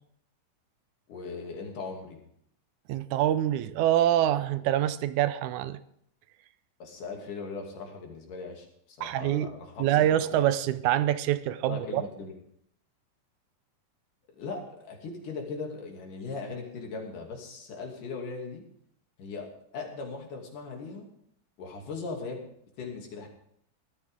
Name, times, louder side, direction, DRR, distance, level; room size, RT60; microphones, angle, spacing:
voice 1, 1.1-2.2 6.8-10.4 11.6-12.3 14.4-18.6 19.2-21.1 21.6-22.5 22.8-23.3, left 4 dB, 70° left, 1 dB, 4.1 m, -39 dB
voice 2, 2.9-5.8 9.0-9.5 9.8-12.0, right 12 dB, 75° right, 13 dB, 1.9 m, -25 dB
18.5 x 13.5 x 3.7 m, 0.70 s
omnidirectional pair, 3.9 m